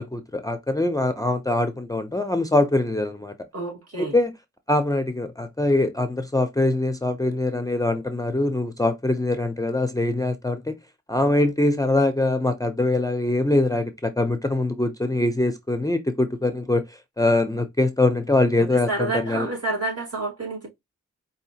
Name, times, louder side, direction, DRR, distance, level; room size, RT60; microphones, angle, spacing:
voice 1, 0.0-3.3 4.0-4.3 4.7-10.7 11.1-16.8 17.2-19.5, left 2 dB, 10° left, 0.5 m, -23 dB
voice 2, 3.5-4.2 18.6-20.7, right 2 dB, 55° right, 2.5 m, -29 dB
4.7 x 2.8 x 2.7 m
wide cardioid pair, 90°, 29 cm